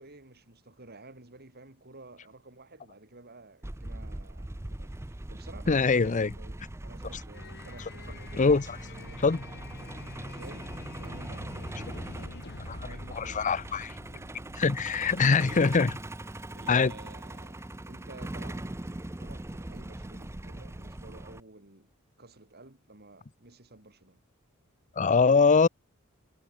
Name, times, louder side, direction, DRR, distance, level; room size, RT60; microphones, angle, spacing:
voice 1, 0.0-9.4 10.3-13.6 14.0-14.3 15.2-15.9 16.5-24.2 25.3-25.5, right 2 dB, 50° right, 4.5 m, -52 dB
Truck, 3.6-21.4, right 1 dB, 10° right, 0.6 m, -41 dB
voice 2, 5.7-6.3 8.4-8.6 9.2-9.4 12.7-12.8 13.2-13.9 14.6-16.0 16.7-16.9 25.0-25.7, left 4 dB, 35° left, 0.6 m, -23 dB
sound 1, 7.3-15.2, left 1 dB, 55° left, 2.3 m, -45 dB
head